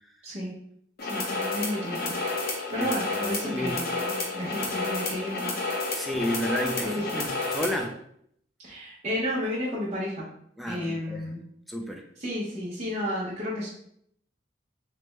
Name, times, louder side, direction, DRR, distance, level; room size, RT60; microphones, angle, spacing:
voice 1, 0.2-0.5 1.0-2.2 2.7-5.6 6.8-7.2 8.6-10.2 10.7-11.4 12.2-13.7, equal, 40° right, -8 dB, 0.7 m, -32 dB
sound 1, 1.0-7.8, left 3 dB, 50° left, 0.6 m, -31 dB
voice 2, 2.8-3.8 5.9-7.9 10.6-11.3 11.7-12.0, equal, ahead, 2 dB, 0.3 m, -32 dB
3.3 x 2.1 x 3.0 m, 0.68 s
head